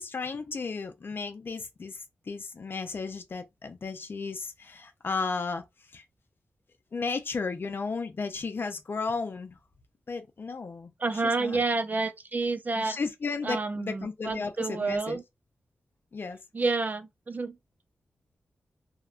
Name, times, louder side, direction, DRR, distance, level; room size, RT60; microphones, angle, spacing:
voice 1, 0.0-6.0 6.9-9.6 10.1-10.9 11.2-11.6 12.8-15.2 16.1-16.4, left 4 dB, 55° left, 0.5 m, -34 dB
voice 2, 11.0-13.0 13.4-15.2 16.5-17.6, right 3 dB, 40° right, 0.4 m, -29 dB
2.8 x 2.1 x 2.4 m
cardioid pair, 45°, 4 cm